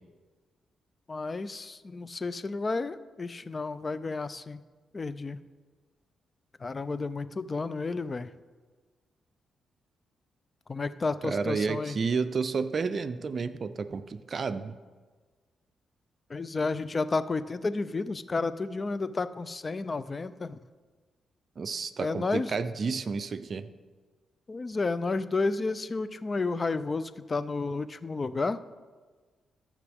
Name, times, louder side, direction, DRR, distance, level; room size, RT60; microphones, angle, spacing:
voice 1, 1.1-4.6 4.9-5.4 6.6-8.3 10.7-12.0 16.3-20.6 22.0-22.5 24.5-28.6, left 3 dB, 35° left, 14 dB, 0.4 m, -31 dB
voice 2, 11.2-14.7 21.6-23.7, right 5 dB, 50° right, 11 dB, 0.5 m, -31 dB
14.0 x 6.0 x 3.5 m, 1.4 s
cardioid pair, 85°, 0 cm